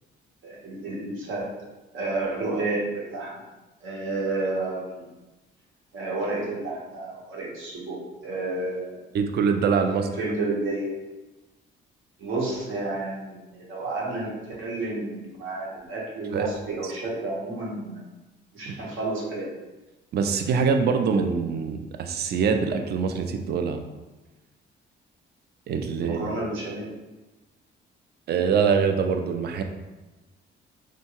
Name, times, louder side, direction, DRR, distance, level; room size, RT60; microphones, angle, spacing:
voice 1, 0.4-1.5 1.9-3.4 3.8-5.0 5.9-9.0 9.9-10.9 12.2-18.1 18.5-19.5 26.0-26.9, right 2 dB, 80° right, -4 dB, 1.1 m, -31 dB
voice 2, 9.1-10.1 16.3-16.6 16.8-16.9 18.7-18.8 20.1-23.8 25.7-26.2 28.3-29.6, right 6 dB, 55° right, 6 dB, 0.4 m, -24 dB
3.7 x 2.2 x 2.9 m, 1.1 s
cardioid pair, 90°, 20 cm